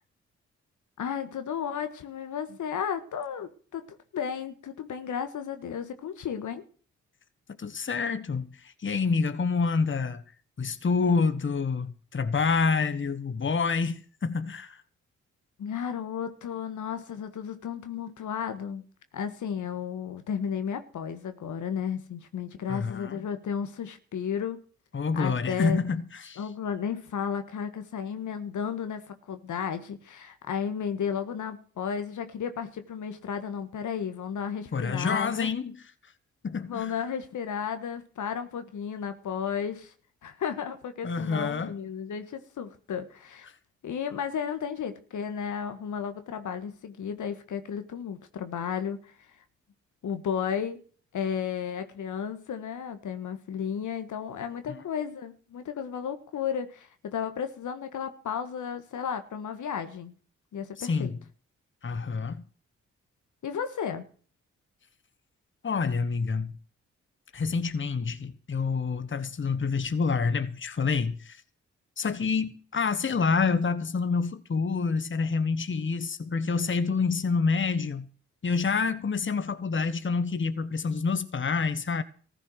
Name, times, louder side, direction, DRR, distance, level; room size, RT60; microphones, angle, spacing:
voice 1, 1.0-6.6 15.6-18.8 19.1-24.6 25.1-25.9 26.4-35.5 36.6-39.9 40.2-43.5 43.8-49.4 50.0-50.8 51.1-60.1 60.5-61.1 63.4-64.1, left 7 dB, 70° left, 1.5 m, -33 dB
voice 2, 7.6-10.2 10.6-14.8 22.7-23.3 24.9-26.4 34.7-35.8 36.4-36.9 41.0-41.7 54.7-54.8 60.8-61.2 61.8-62.4 65.6-66.6 67.3-71.4 72.0-78.1 78.4-82.0, left 5 dB, 40° left, 1.3 m, -27 dB
15.0 x 9.9 x 6.4 m
supercardioid pair, 45°, 31 cm